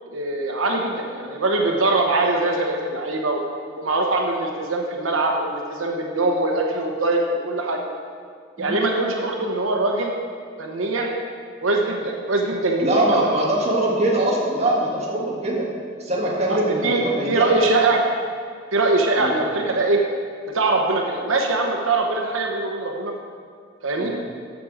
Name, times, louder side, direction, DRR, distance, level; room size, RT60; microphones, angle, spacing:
voice 1, 0.1-3.4 3.8-7.8 8.6-10.1 10.6-11.1 11.6-13.3 16.5-18.0 18.7-20.0 20.5-23.1 23.8-24.1, right 2 dB, 90° right, 1 dB, 1.0 m, -22 dB
voice 2, 12.8-15.7 16.0-17.5 19.2-19.4 24.0-24.2, right 1 dB, 30° right, -3 dB, 1.8 m, -22 dB
13.5 x 6.1 x 5.0 m, 2.1 s
head